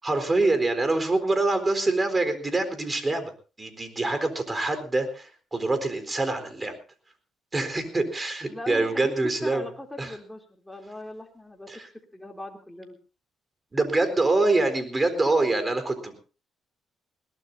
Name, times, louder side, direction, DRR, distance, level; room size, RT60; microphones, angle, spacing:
voice 1, 0.0-3.3 3.6-6.7 7.5-9.6 10.0-10.2 11.7-11.9 13.7-16.2, right 2 dB, 25° right, 9 dB, 4.2 m, -25 dB
voice 2, 8.5-9.1 9.4-11.7 12.1-13.0, left 1 dB, 5° left, 2 dB, 3.2 m, -40 dB
21.5 x 18.5 x 2.7 m, 0.35 s
cardioid pair, 90°, 0 cm